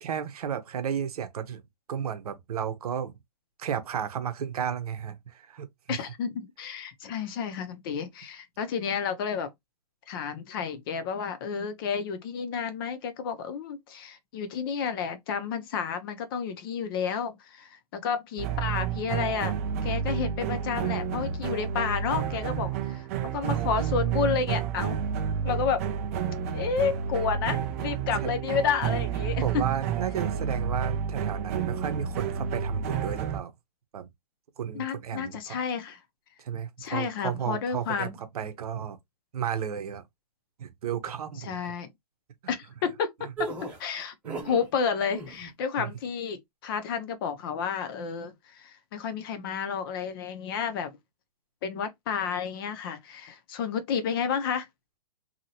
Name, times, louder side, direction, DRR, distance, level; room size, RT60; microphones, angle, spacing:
voice 1, 0.0-1.6 1.9-3.1 3.6-6.0 28.2-28.3 29.4-33.5 33.9-34.1 34.6-35.6 36.4-39.0 39.3-40.0 40.6-41.7 44.2-44.5 45.8-45.9, right 8 dB, 65° right, 0.8 m, -33 dB
voice 2, 5.9-9.5 10.1-25.0 25.4-25.8 26.5-29.6 34.7-36.0 36.8-38.1 41.4-41.9 42.5-43.1 43.4-43.5 43.8-44.1 44.4-51.0 51.6-54.7, left 6 dB, 35° left, 0.6 m, -31 dB
sound 1, 18.4-33.4, right 8 dB, 20° right, 0.3 m, -30 dB
sound 2, 43.4-44.7 45.0-45.5, right 3 dB, 5° right, 1.0 m, -36 dB
2.8 x 2.8 x 2.7 m
hypercardioid pair, 150°, 21 cm